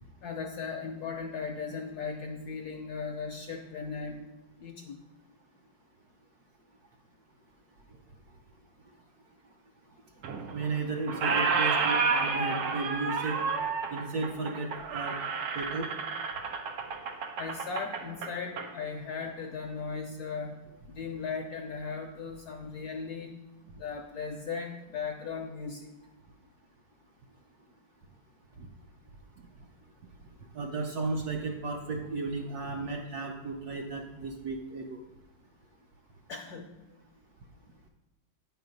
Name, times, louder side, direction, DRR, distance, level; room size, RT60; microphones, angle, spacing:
voice 1, 0.2-4.2 4.6-5.0 17.4-20.6 20.9-23.3 23.7-25.9 36.3-36.7, left 5 dB, 70° left, 3 dB, 0.9 m, -37 dB
Squeak, 10.2-10.8 11.1-18.7, right 5 dB, 85° right, 1.7 m, -30 dB
voice 2, 10.5-13.4 13.9-15.2 15.5-15.9 28.6-28.7 30.5-35.0, right 3 dB, 65° right, 2 dB, 0.9 m, -34 dB
9.2 x 4.7 x 5.2 m, 1.1 s
omnidirectional pair, 2.3 m